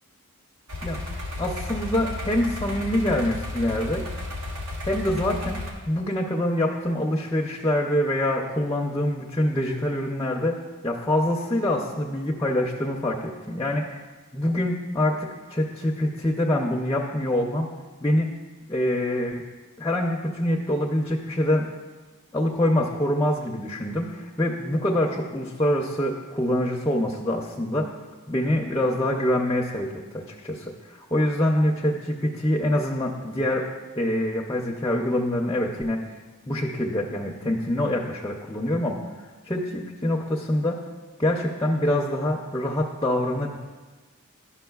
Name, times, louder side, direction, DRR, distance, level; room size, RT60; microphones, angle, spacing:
sound 1, 0.7-5.7, left 2 dB, 80° right, 1.2 m, -33 dB
voice 1, 1.4-4.0 4.9-5.6 5.9-10.5 10.8-14.0 14.3-17.7 18.0-18.3 18.7-19.4 19.8-21.7 22.3-27.9 28.3-33.7 33.9-36.1 36.5-39.0 39.5-40.8 41.2-43.6, left 1 dB, 15° left, -1 dB, 0.4 m, -25 dB
11.5 x 5.8 x 2.3 m, 1.3 s
head